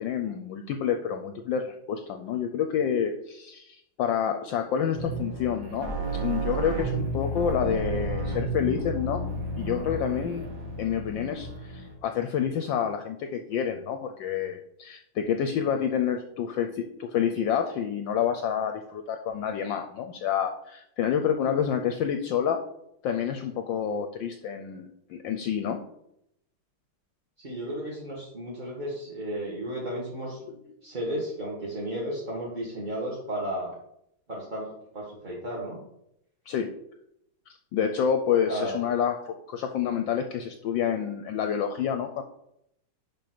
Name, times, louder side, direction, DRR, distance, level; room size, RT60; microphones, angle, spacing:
voice 1, 0.0-5.9 6.2-9.2 9.6-10.5 10.8-22.6 23.0-25.8 30.5-30.6 36.5-36.7 37.7-42.2, left 8 dB, 75° left, 6 dB, 1.2 m, -28 dB
sound 1, 4.9-11.9, right 2 dB, 55° right, 2.3 m, -32 dB
voice 2, 27.4-30.4 30.8-33.7 34.3-35.8 38.5-38.7, right 1 dB, 25° right, -5 dB, 1.2 m, -33 dB
5.4 x 5.2 x 5.9 m, 0.78 s
omnidirectional pair, 2.4 m